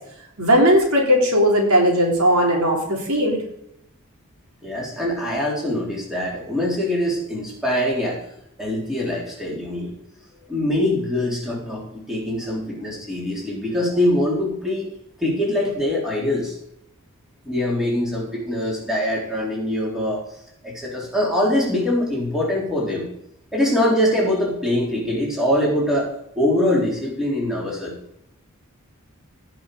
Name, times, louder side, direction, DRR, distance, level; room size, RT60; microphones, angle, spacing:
voice 1, 0.4-3.4, equal, 80° right, 0 dB, 3.4 m, -17 dB
voice 2, 4.6-8.2 8.6-10.0 10.5-14.9 15.2-16.6 17.4-20.2 20.6-23.1 23.5-26.1 26.4-27.9, left 1 dB, ahead, -4 dB, 3.8 m, -23 dB
17.5 x 5.9 x 5.1 m, 0.78 s
head